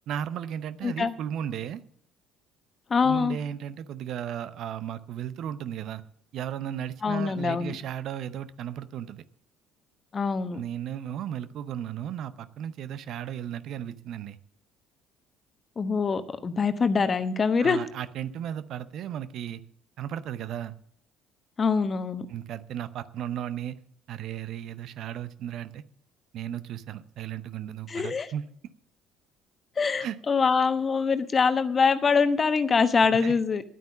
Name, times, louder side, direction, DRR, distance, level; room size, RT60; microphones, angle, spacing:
voice 1, 0.1-1.8 3.0-6.0 6.3-9.2 10.5-14.4 17.6-19.6 20.0-20.7 22.3-23.8 24.1-25.8 26.3-28.4 30.0-30.2 33.2-33.3, right 10 dB, 55° right, 14 dB, 0.7 m, -35 dB
voice 2, 0.8-1.1 2.9-3.4 7.0-7.8 10.1-10.6 15.8-17.8 21.6-22.3 27.9-28.3 29.8-33.6, left 5 dB, 35° left, 12 dB, 1.1 m, -24 dB
11.0 x 9.2 x 7.1 m, 0.66 s
hypercardioid pair, 55°, 0 cm